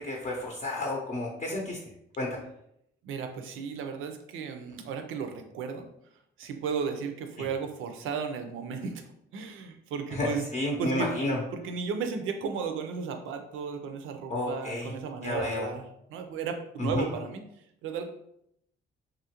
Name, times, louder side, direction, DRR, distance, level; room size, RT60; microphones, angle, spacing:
voice 1, 0.0-1.8 2.2-2.4 7.4-7.5 10.1-11.4 14.3-14.9 15.2-15.7 16.8-17.1, left 1 dB, 35° left, -1 dB, 0.6 m, -31 dB
voice 2, 3.0-5.9 6.4-10.5 10.8-11.1 11.5-17.4 17.8-18.1, right 6 dB, 85° right, 6 dB, 0.5 m, -34 dB
2.9 x 2.4 x 2.8 m, 0.76 s
cardioid pair, 90°, 20 cm